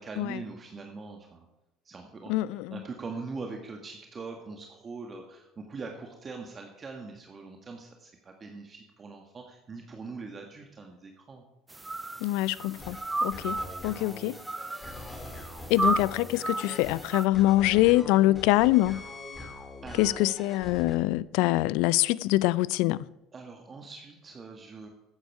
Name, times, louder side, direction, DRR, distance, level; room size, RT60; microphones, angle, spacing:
voice 1, 0.0-1.5 1.8-11.4 19.8-20.3 23.3-24.9, right 4 dB, 30° right, 1.7 m, -42 dB
voice 2, 2.3-2.8 12.2-14.4 15.7-19.0 20.0-23.0, left 17 dB, 65° left, 0.4 m, -24 dB
sound 1, 11.7-17.3, right 2 dB, 15° right, 0.4 m, -33 dB
sound 2, 12.8-21.0, left 2 dB, 20° left, 2.8 m, -43 dB
14.0 x 9.7 x 4.8 m
hypercardioid pair, 65°, 0 cm